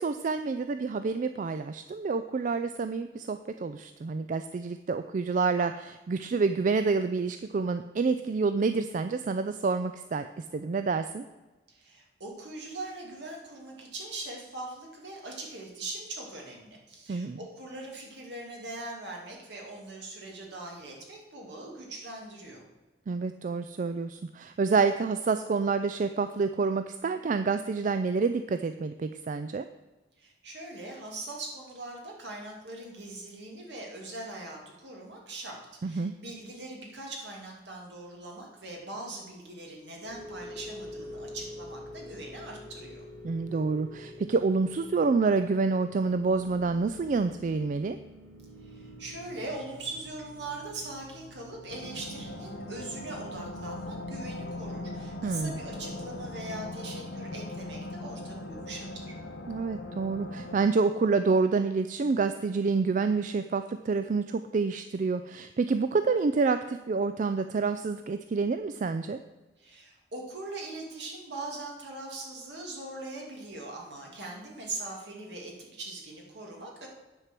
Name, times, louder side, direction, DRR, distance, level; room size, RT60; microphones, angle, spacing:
voice 1, 0.0-10.3 10.5-11.2 17.1-17.4 23.1-29.6 35.8-36.1 43.2-48.0 55.2-55.6 59.5-69.2, right 4 dB, 45° right, 10 dB, 0.3 m, -28 dB
voice 2, 11.7-22.6 30.2-43.0 48.6-59.1 69.6-76.9, right 2 dB, 65° right, 0 dB, 2.4 m, -41 dB
sound 1, 40.0-56.2, left 1 dB, 85° right, 3.5 m, -47 dB
sound 2, 51.7-60.6, left 1 dB, 70° left, 1.3 m, -40 dB
9.7 x 4.7 x 7.5 m, 1.1 s
head